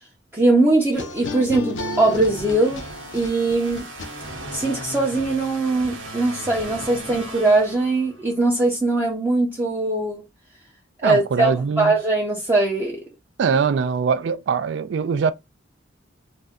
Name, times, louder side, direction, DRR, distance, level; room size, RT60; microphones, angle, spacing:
voice 1, 0.3-2.8 3.1-3.9 4.5-10.2 11.0-11.5 11.8-13.0, right 2 dB, 10° right, 0.5 m, -21 dB
sound 1, 0.9-4.6, left 2 dB, 75° left, 0.5 m, -33 dB
sound 2, 1.7-8.4, right 1 dB, 85° right, 0.8 m, -37 dB
voice 2, 11.0-12.0 13.4-15.3, right 6 dB, 65° right, 0.3 m, -22 dB
2.6 x 2.1 x 3.4 m
head